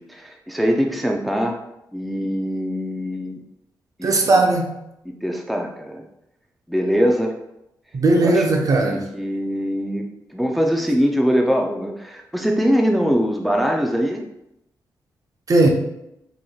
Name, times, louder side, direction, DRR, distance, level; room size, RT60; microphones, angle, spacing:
voice 1, 0.0-1.6 1.9-3.4 4.0-4.1 5.2-6.0 6.7-7.3 8.2-8.5 8.8-14.3, equal, ahead, 2 dB, 0.4 m, -22 dB
voice 2, 4.0-4.7 7.9-9.0 15.5-15.7, right 2 dB, 50° right, 3 dB, 0.6 m, -17 dB
4.1 x 3.0 x 2.3 m, 0.84 s
cardioid pair, 70°, 8 cm